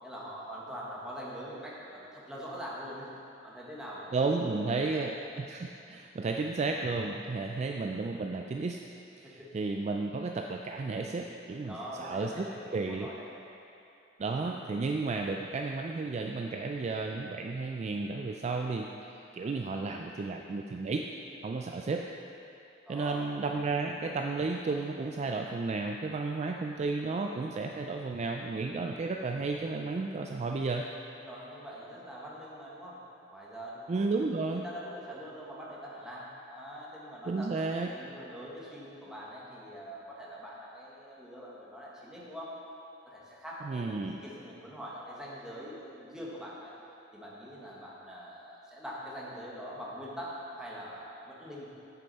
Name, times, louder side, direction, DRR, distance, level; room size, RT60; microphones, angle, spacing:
voice 1, 0.0-3.1 3.4-5.1 9.2-9.5 11.7-13.3 22.8-23.2 31.1-33.0 33.3-34.1 34.5-37.5 37.9-42.5 43.1-46.7 47.1-51.7, equal, 5° right, -6 dB, 1.3 m, -43 dB
voice 2, 4.1-8.8 9.2-12.5 12.7-13.1 14.2-18.9 19.3-21.0 21.4-22.0 22.9-30.8 33.9-34.7 37.2-37.9 43.6-44.2, right 3 dB, 35° right, 2 dB, 0.3 m, -33 dB
8.4 x 7.0 x 4.1 m, 2.7 s
head